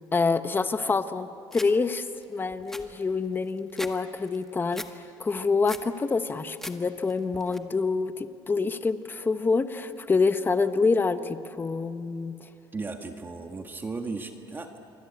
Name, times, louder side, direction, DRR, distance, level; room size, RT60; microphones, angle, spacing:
voice 1, 0.1-4.8 5.2-12.4, left 4 dB, 20° left, 10 dB, 1.2 m, -26 dB
sound 1, 1.5-1.7 2.2-2.3 2.5-3.9 4.3-4.9 5.3-5.9 6.3-6.8 7.1-7.6, left 1 dB, 5° left, 1.6 m, -40 dB
voice 2, 12.7-14.8, right 3 dB, 20° right, 5 dB, 1.7 m, -36 dB
28.0 x 24.0 x 8.7 m, 2.7 s
cardioid pair, 115°, 9 cm